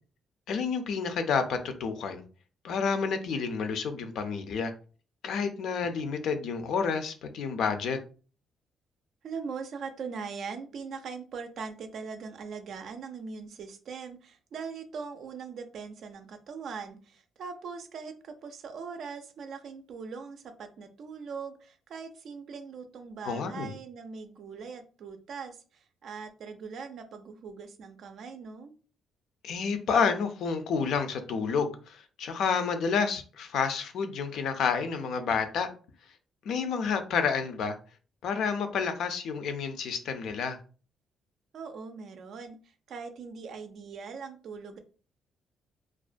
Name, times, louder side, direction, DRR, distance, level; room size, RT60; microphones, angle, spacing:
voice 1, 0.5-2.2 2.6-4.7 5.2-8.0 23.2-23.7 29.4-35.7 36.4-37.8 38.2-40.6, left 5 dB, 75° left, 8 dB, 0.4 m, -29 dB
voice 2, 9.2-28.7 41.5-44.8, right 5 dB, 65° right, 8 dB, 0.4 m, -41 dB
2.4 x 2.1 x 2.4 m, 0.37 s
cardioid pair, 90°, 0 cm